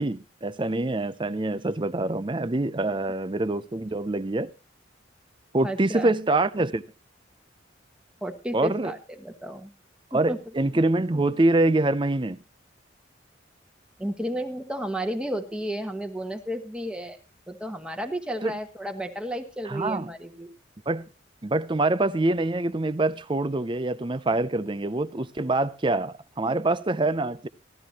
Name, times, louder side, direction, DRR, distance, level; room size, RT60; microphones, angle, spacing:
voice 1, 0.0-4.5 5.5-6.8 8.5-8.9 10.1-12.4 18.4-18.6 19.6-20.1 20.9-21.1 21.4-27.5, right 2 dB, 25° right, 0.6 m, -25 dB
voice 2, 5.6-6.1 8.2-9.7 10.1-10.4 14.0-17.2 17.5-20.5, right 1 dB, 5° right, 1.3 m, -32 dB
15.5 x 13.0 x 2.9 m
head